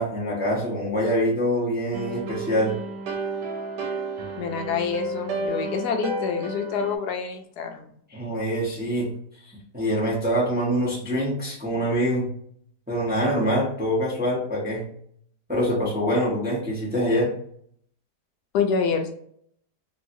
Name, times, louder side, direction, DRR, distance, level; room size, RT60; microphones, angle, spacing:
voice 1, 0.0-2.8 8.1-9.1 9.4-12.3 12.9-14.9 15.5-17.3, equal, 10° right, -5 dB, 0.6 m, -25 dB
sound 1, 1.9-7.0, right 2 dB, 80° right, 1.3 m, -31 dB
voice 2, 4.4-7.9 18.5-19.1, left 6 dB, 75° left, 4 dB, 1.1 m, -27 dB
3.0 x 2.8 x 2.6 m, 0.65 s
omnidirectional pair, 1.8 m